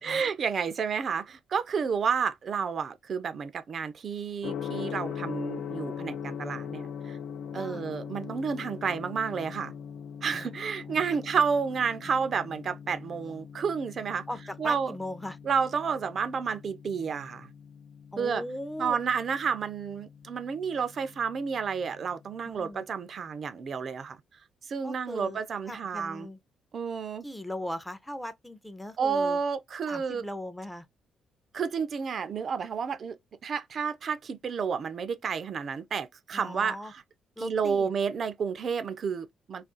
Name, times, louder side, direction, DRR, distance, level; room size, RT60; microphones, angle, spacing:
voice 1, 0.0-7.2 7.5-9.7 10.2-14.2 14.6-14.9 15.4-17.5 18.2-18.4 18.8-24.2 24.6-26.3 26.7-27.3 29.0-30.2 31.5-37.0 37.4-39.7, right 6 dB, 50° right, 0.4 m, -30 dB
Gong, 4.4-22.3, left 8 dB, 70° left, 0.4 m, -41 dB
voice 2, 7.5-7.8 10.3-10.5 10.9-11.0 14.3-15.4 18.1-19.0 22.4-22.8 24.8-25.4 25.7-26.4 27.2-29.4 29.9-30.9 36.3-36.9 37.4-37.9, left 1 dB, 5° left, 0.5 m, -39 dB
2.4 x 2.3 x 3.7 m
cardioid pair, 90°, 0 cm